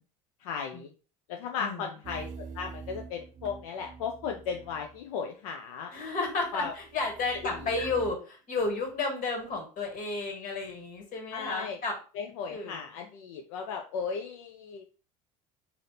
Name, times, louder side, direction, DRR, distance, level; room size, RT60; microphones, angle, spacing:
voice 1, 0.4-0.9 1.3-5.9 6.5-6.7 7.4-7.9 11.3-11.8 12.2-14.8, left 6 dB, 80° left, 3 dB, 0.5 m, -36 dB
voice 2, 1.6-1.9 5.9-12.0 12.5-12.8, left 3 dB, 50° left, 2 dB, 1.9 m, -32 dB
sound 1, 2.0-5.1 6.4-8.1, right 5 dB, 45° right, 0.6 m, -45 dB
3.2 x 2.7 x 4.1 m, 0.36 s
hypercardioid pair, 80°, 18 cm